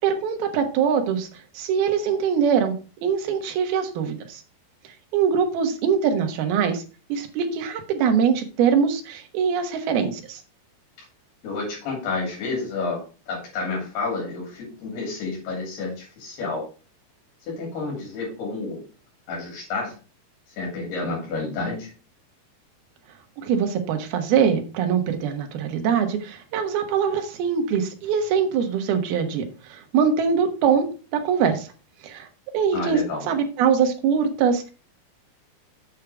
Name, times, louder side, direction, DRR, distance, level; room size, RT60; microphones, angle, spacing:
voice 1, 0.0-4.4 5.1-6.8 7.1-10.4 23.4-31.7 32.0-32.3 32.5-34.7, right 7 dB, 70° right, 6 dB, 3.2 m, -23 dB
voice 2, 11.4-16.6 17.5-18.8 19.3-19.9 20.6-21.9 32.7-33.2, left 3 dB, 75° left, -1 dB, 4.9 m, -30 dB
8.4 x 6.5 x 4.7 m, 0.34 s
omnidirectional pair, 4.6 m